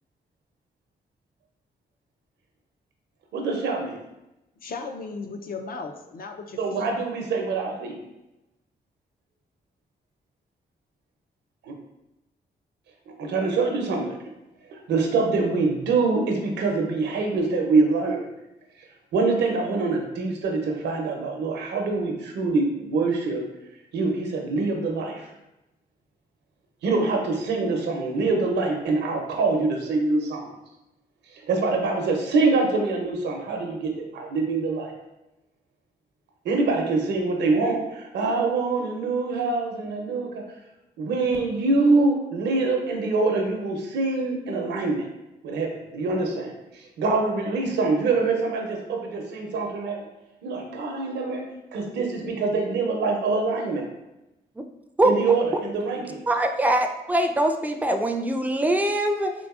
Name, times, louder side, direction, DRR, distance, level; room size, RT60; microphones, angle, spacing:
voice 1, 3.3-4.0 6.6-8.0 11.6-11.7 13.2-14.2 14.7-18.3 19.1-23.4 23.9-25.3 26.8-30.5 31.5-34.9 36.4-40.3 41.0-45.1 45.4-46.5 47.0-50.0 50.4-51.4 51.7-53.8 55.0-56.2, right 3 dB, 90° right, 2 dB, 0.6 m, -24 dB
voice 2, 4.6-6.9, left 4 dB, 55° left, 4 dB, 0.5 m, -36 dB
voice 3, 56.3-59.3, right 1 dB, 10° right, 5 dB, 0.4 m, -22 dB
3.8 x 2.6 x 2.4 m, 0.94 s
cardioid pair, 65°, 18 cm